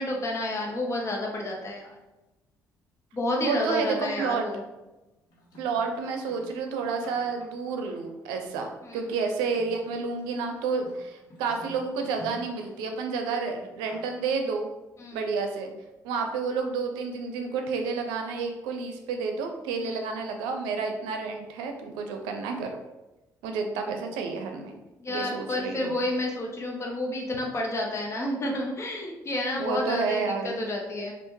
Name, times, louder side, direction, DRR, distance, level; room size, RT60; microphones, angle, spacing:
voice 1, 0.0-2.0 3.1-4.6 8.8-9.0 15.0-15.2 19.8-20.1 25.0-31.1, left 1 dB, 40° left, 0 dB, 0.9 m, -30 dB
voice 2, 3.4-4.5 5.6-14.7 15.1-15.7 16.0-22.7 23.4-24.8 25.1-25.9 29.6-30.6, right 4 dB, 90° right, 4 dB, 0.5 m, -30 dB
sound 1, 5.3-8.3 9.3-12.8 13.4-14.3, left 1 dB, 65° left, 1.1 m, -50 dB
3.4 x 2.4 x 3.1 m, 1.0 s
supercardioid pair, 65°, 7 cm